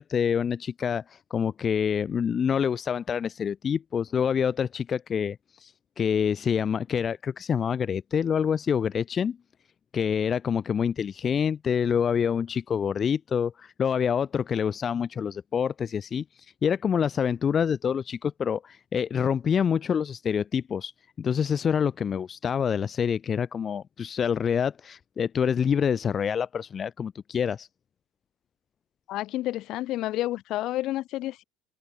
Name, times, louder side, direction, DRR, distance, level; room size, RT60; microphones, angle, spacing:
voice 1, 0.0-9.4 9.9-16.2 16.6-20.9 21.2-27.7, left 7 dB, 30° left, 5.4 m, -26 dB
voice 2, 29.1-31.4, left 15 dB, 60° left, 3.3 m, -30 dB
cardioid pair, 135°, 0 cm